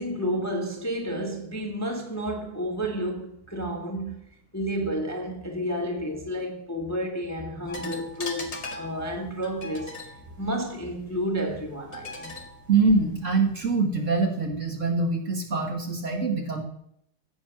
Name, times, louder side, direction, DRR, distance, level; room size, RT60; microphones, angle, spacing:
voice 1, 0.0-4.2 4.5-9.9 10.4-12.4, equal, 10° left, 1.3 m, -31 dB
sound 1, 7.7-13.7, left 2 dB, 40° left, 2.3 m, -41 dB
voice 2, 12.7-16.6, right 3 dB, 40° right, 1.8 m, -24 dB
16.0 x 7.7 x 6.0 m
omnidirectional pair, 2.3 m